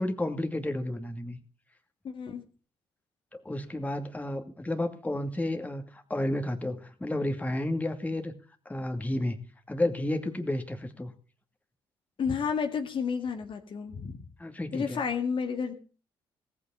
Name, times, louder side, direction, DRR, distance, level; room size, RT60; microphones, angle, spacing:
voice 1, 0.0-1.4 3.3-8.3 8.7-11.1 14.4-15.0, left 1 dB, 10° left, 6 dB, 2.5 m, -31 dB
voice 2, 2.0-2.4 12.2-14.2 14.7-15.7, left 6 dB, 45° left, 6 dB, 2.0 m, -31 dB
18.5 x 8.5 x 7.3 m, 0.39 s
figure-of-eight pair, 45°, 12 cm